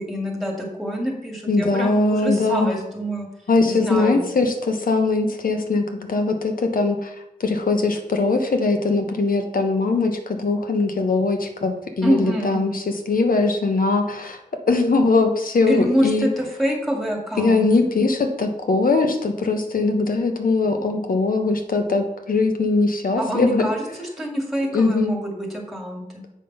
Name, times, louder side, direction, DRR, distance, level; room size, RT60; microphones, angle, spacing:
voice 1, 0.0-3.3 3.6-4.3 12.0-12.6 15.7-17.9 23.2-26.2, equal, ahead, 0 dB, 2.2 m, -26 dB
voice 2, 1.5-2.8 3.5-7.1 7.4-14.4 14.7-16.3 17.4-23.7 24.7-25.2, left 3 dB, 85° left, 5 dB, 1.1 m, -21 dB
7.7 x 5.2 x 5.5 m, 0.88 s
wide cardioid pair, 90°, 14 cm